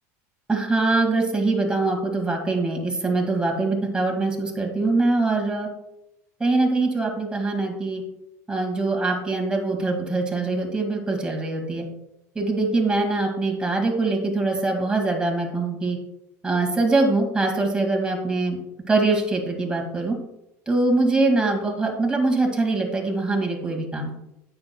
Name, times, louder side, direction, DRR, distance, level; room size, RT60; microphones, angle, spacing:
voice 1, 0.5-5.7 6.4-8.0 8.5-11.9 12.4-16.0 16.4-18.6 18.9-20.2 20.7-24.1, right 3 dB, 10° right, 1 dB, 1.9 m, -23 dB
9.5 x 6.9 x 2.2 m, 0.86 s
hypercardioid pair, 90°, 8 cm